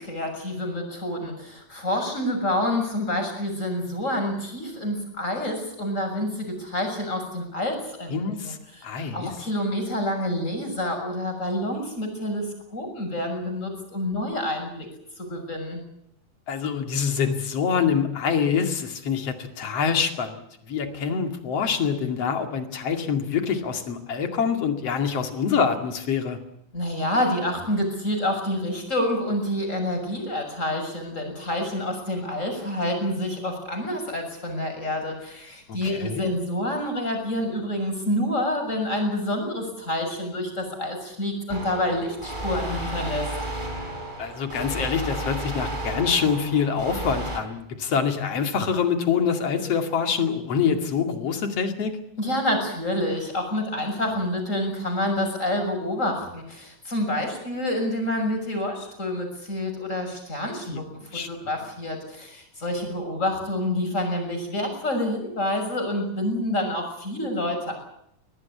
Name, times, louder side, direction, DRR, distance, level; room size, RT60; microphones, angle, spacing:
voice 1, 0.0-8.1 8.4-8.5 9.1-14.9 15.2-15.8 26.7-43.3 52.2-67.7, left 1 dB, 20° left, 3 dB, 6.9 m, -28 dB
voice 2, 8.1-8.6 8.8-9.3 16.5-20.4 20.7-26.4 35.7-36.3 44.2-52.0 60.7-60.8 61.1-61.3, left 6 dB, 50° left, 6 dB, 3.2 m, -25 dB
sound 1, 41.5-47.4, right 1 dB, 15° right, 4.2 m, -33 dB
24.0 x 18.5 x 8.5 m, 0.76 s
omnidirectional pair, 3.7 m